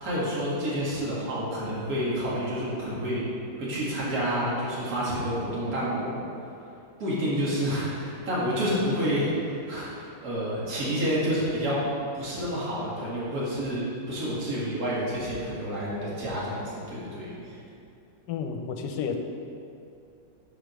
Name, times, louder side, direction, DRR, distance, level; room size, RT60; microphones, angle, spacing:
voice 1, 0.0-3.2 3.6-6.2 7.0-11.8 12.1-17.6, equal, 50° right, -8 dB, 2.3 m, -29 dB
voice 2, 18.3-19.1, left 6 dB, 75° left, 4 dB, 1.3 m, -31 dB
7.3 x 5.0 x 6.2 m, 2.6 s
omnidirectional pair, 2.0 m